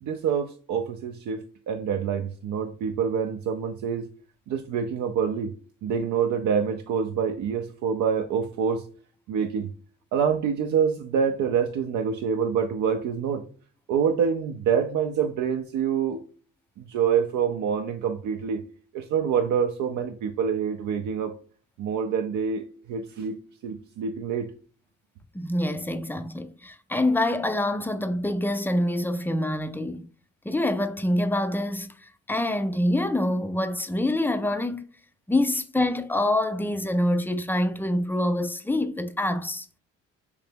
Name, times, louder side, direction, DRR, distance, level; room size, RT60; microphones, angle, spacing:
voice 1, 0.0-4.1 4.5-5.5 5.8-8.8 9.3-9.7 10.1-13.5 13.9-16.2 16.8-18.6 18.9-21.4 21.8-23.4 23.6-24.5, right 7 dB, 75° right, 0.5 m, -26 dB
voice 2, 25.3-30.1 30.5-31.9 32.3-34.8 35.3-39.7, left 1 dB, 5° left, 0.3 m, -26 dB
3.3 x 2.9 x 3.5 m
cardioid pair, 90°, 30 cm